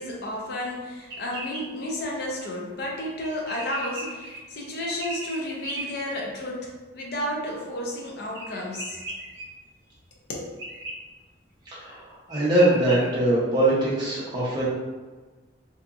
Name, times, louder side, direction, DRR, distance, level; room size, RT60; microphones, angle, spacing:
voice 1, 0.0-9.0 10.3-10.5, left 1 dB, 60° left, -2 dB, 0.6 m, -32 dB
sound 1, 1.0-1.6 3.2-4.4 5.0-5.9 8.3-9.4 10.6-10.9 11.9-12.0 12.3-13.0, right 2 dB, 65° right, 0.8 m, -36 dB
voice 2, 11.7-14.6, right 1 dB, 20° right, -8 dB, 0.7 m, -22 dB
2.7 x 2.6 x 2.3 m, 1.3 s
head